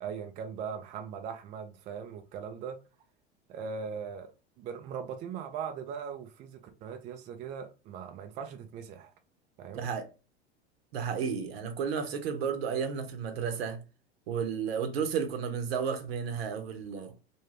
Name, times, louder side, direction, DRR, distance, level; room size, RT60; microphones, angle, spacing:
voice 1, 0.0-2.8 3.5-4.3 4.6-9.1 9.6-9.9, right 6 dB, 25° right, 0.3 m, -39 dB
voice 2, 9.7-10.1 10.9-13.8 14.3-17.2, right 6 dB, 60° right, 0.7 m, -32 dB
2.3 x 2.3 x 3.1 m
figure-of-eight pair, 85°, 34 cm